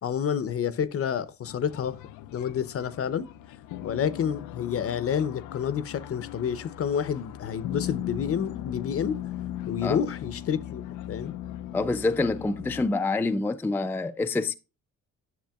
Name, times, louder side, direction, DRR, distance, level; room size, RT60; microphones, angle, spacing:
voice 1, 0.0-2.0 2.3-3.3 3.8-9.2 9.7-10.8 11.1-11.3, left 8 dB, 50° left, 0.7 m, -29 dB
sound 1, 1.4-12.9, left 12 dB, 90° left, 0.5 m, -38 dB
voice 2, 11.7-14.5, left 3 dB, 5° left, 0.4 m, -26 dB
10.5 x 6.7 x 2.3 m
cardioid pair, 90°, 30 cm